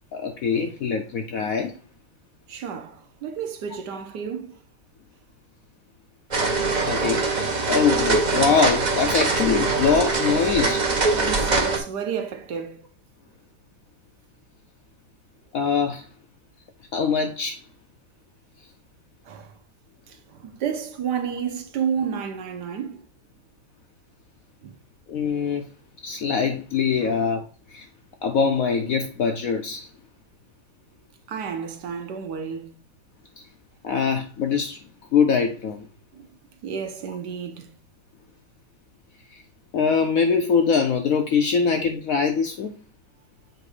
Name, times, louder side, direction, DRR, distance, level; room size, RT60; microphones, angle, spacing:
voice 1, 0.1-1.7 6.9-10.8 15.5-16.1 16.9-17.6 25.1-25.7 26.0-27.9 28.2-29.9 33.4-33.5 33.8-34.8 35.1-35.9 39.7-42.7, left 6 dB, 70° left, 0.8 m, -23 dB
voice 2, 2.5-4.6 11.2-12.8 19.2-19.6 20.1-23.0 24.6-24.8 27.0-27.2 31.3-32.8 36.1-36.3 36.6-37.8, right 7 dB, 70° right, 1.3 m, -31 dB
sound 1, 6.3-11.8, right 3 dB, 40° right, 0.7 m, -23 dB
7.8 x 2.6 x 4.8 m
omnidirectional pair, 2.0 m